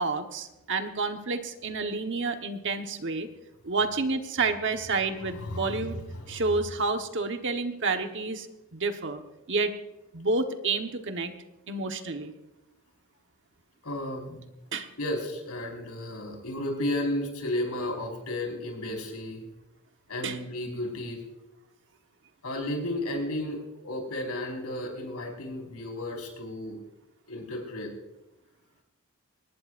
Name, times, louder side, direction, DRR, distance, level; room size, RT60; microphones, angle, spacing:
voice 1, 0.0-3.3 3.6-6.0 6.3-8.5 8.7-9.2 9.5-9.7 10.1-11.3 11.7-12.3 14.7-14.9 20.2-20.4, right 3 dB, 55° right, 6 dB, 1.2 m, -29 dB
voice 2, 5.2-6.5 13.8-14.4 15.0-19.5 20.1-21.2 22.4-26.8 27.3-27.9, left 1 dB, 90° left, 1 dB, 4.9 m, -33 dB
23.5 x 19.5 x 2.6 m, 0.99 s
head